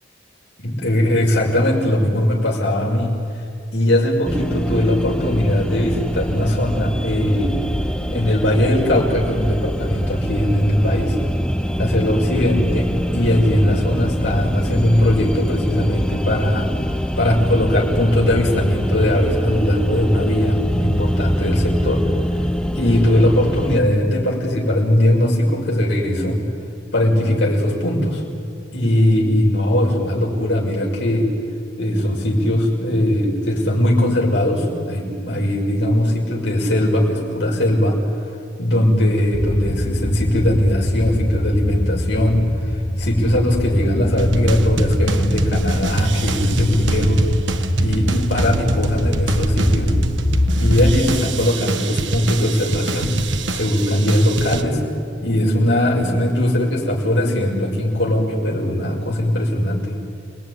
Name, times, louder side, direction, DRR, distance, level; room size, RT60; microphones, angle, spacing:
voice 1, 0.6-3.1 3.7-7.6 8.1-11.1 11.8-16.7 17.2-22.0 22.7-26.4 26.9-28.2 28.7-31.3 31.8-38.0 38.6-42.4 43.0-47.2 47.8-49.9 50.6-53.1 53.5-54.8 55.2-59.9, left 1 dB, 70° left, -1 dB, 6.3 m, -19 dB
sound 1, 4.3-23.8, equal, 5° left, 1.1 m, -24 dB
sound 2, 39.3-51.0, left 1 dB, 35° left, 1.4 m, -23 dB
sound 3, 44.2-54.6, right 2 dB, 90° right, 1.5 m, -24 dB
29.0 x 20.0 x 9.9 m, 2.5 s
head